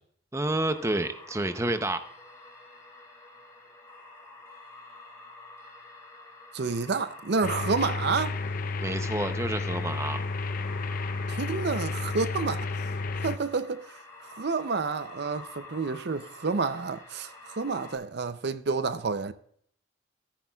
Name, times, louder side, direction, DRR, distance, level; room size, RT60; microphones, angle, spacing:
voice 1, 0.3-2.0 8.8-10.2, right 1 dB, 15° right, 0.6 m, -29 dB
sound 1, 0.7-18.0, left 2 dB, 15° left, 3.8 m, -49 dB
voice 2, 6.5-8.4 11.3-12.7 13.2-14.0 14.2-19.3, right 4 dB, 55° right, 0.5 m, -29 dB
sound 2, 7.4-13.4, left 3 dB, 45° left, 0.5 m, -32 dB
14.5 x 10.0 x 2.3 m
head